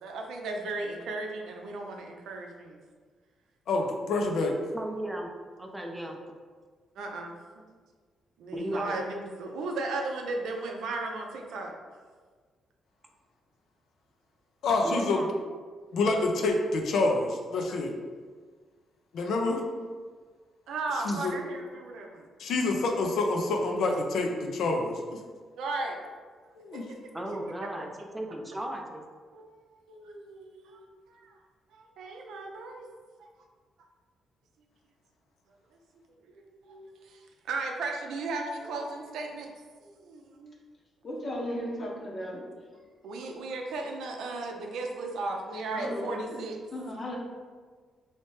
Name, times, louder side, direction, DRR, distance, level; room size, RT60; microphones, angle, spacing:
voice 1, 0.0-2.8 7.0-7.3 8.4-11.7 20.7-22.3 25.6-26.0 26.7-27.1 29.3-29.4 29.9-31.3 31.7-32.9 36.3-39.5 39.8-40.6 43.0-46.6, right 3 dB, 80° right, 2 dB, 0.5 m, -36 dB
voice 2, 3.7-4.5 14.6-15.2 15.9-17.9 19.1-19.6 21.0-21.4 22.4-25.2 26.6-26.9, left 2 dB, 70° left, 2 dB, 0.5 m, -27 dB
voice 3, 4.7-5.3 5.6-6.2 8.5-9.0 14.8-15.4 27.1-29.0, right 1 dB, 10° right, 2 dB, 0.5 m, -35 dB
voice 4, 41.0-42.6 45.7-46.4 46.7-47.2, equal, 40° left, -2 dB, 0.8 m, -35 dB
3.2 x 2.8 x 3.1 m, 1.5 s
cardioid pair, 90°, 0 cm